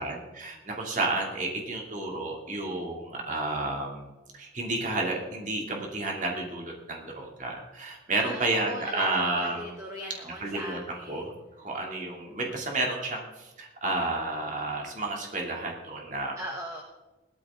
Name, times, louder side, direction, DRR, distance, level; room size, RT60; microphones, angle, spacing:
voice 1, 0.0-4.1 4.3-9.7 10.3-16.4, right 2 dB, 40° right, 0 dB, 2.8 m, -31 dB
voice 2, 8.2-11.2 16.4-16.8, equal, 15° right, 0 dB, 1.3 m, -39 dB
17.5 x 13.5 x 3.8 m, 1.1 s
head